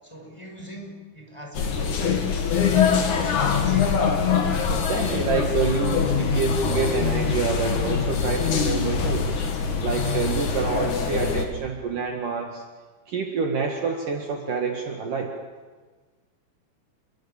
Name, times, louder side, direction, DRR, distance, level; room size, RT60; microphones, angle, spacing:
voice 1, 0.0-2.1 2.4-3.8 10.9-11.1, equal, 5° left, 0 dB, 5.6 m, -40 dB
sound 1, 1.5-11.5, left 6 dB, 50° left, 3.3 m, -23 dB
voice 2, 4.7-9.3 9.8-12.6 13.1-15.3, right 5 dB, 55° right, 1 dB, 3.3 m, -27 dB
29.0 x 22.5 x 7.3 m, 1.4 s
omnidirectional pair, 4.9 m